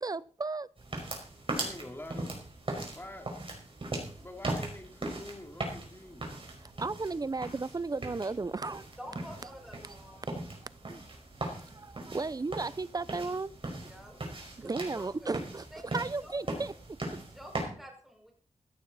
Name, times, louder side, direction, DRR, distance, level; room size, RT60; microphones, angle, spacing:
voice 1, 0.0-0.7 6.6-8.9 9.8-10.3 10.6-11.0 11.5-13.5 14.6-15.7 15.9-16.7, right 3 dB, 35° right, 0.6 m, -35 dB
sound 1, 0.8-17.6, right 2 dB, 50° right, 5.3 m, -39 dB
voice 2, 1.5-2.5 2.9-3.4 4.2-6.4 9.0-9.8, left 1 dB, 20° left, 3.2 m, -47 dB
voice 3, 9.0-10.2 13.8-14.2 14.6-15.4 15.7-16.3 17.2-18.3, equal, ahead, 5.4 m, -48 dB
16.0 x 13.5 x 4.2 m
wide cardioid pair, 85°, 12 cm